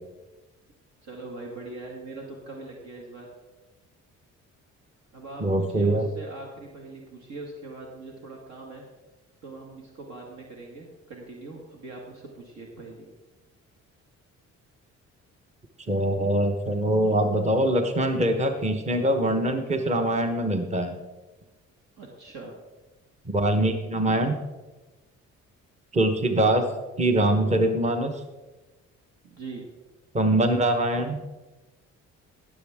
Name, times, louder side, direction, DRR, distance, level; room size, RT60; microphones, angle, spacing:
voice 1, 1.0-3.3 5.1-8.8 9.4-13.1 22.0-22.5 29.2-29.6, right 2 dB, 65° right, -1 dB, 1.9 m, -41 dB
voice 2, 5.4-6.1 15.9-21.0 23.3-24.4 25.9-26.6 27.0-28.1 30.1-31.2, right 1 dB, 25° right, 5 dB, 1.1 m, -23 dB
18.0 x 7.4 x 3.6 m, 1.1 s
cardioid pair, 90°, 30 cm